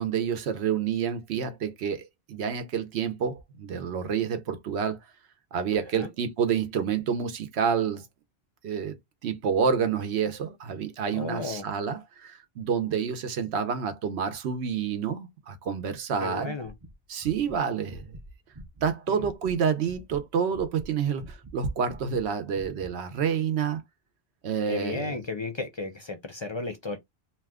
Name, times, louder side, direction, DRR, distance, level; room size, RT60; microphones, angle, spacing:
voice 1, 0.0-5.0 5.5-8.1 8.6-9.0 9.2-16.5 17.1-18.2 18.8-23.8 24.4-25.2, right 7 dB, 85° right, 1.0 m, -28 dB
voice 2, 11.1-11.7 16.2-16.7 19.1-19.3 24.7-27.0, left 3 dB, 40° left, 0.4 m, -34 dB
sound 1, 16.6-19.6 19.8-22.3 22.5-22.9, right 2 dB, 30° right, 0.4 m, -45 dB
2.7 x 2.2 x 3.4 m
omnidirectional pair, 1.1 m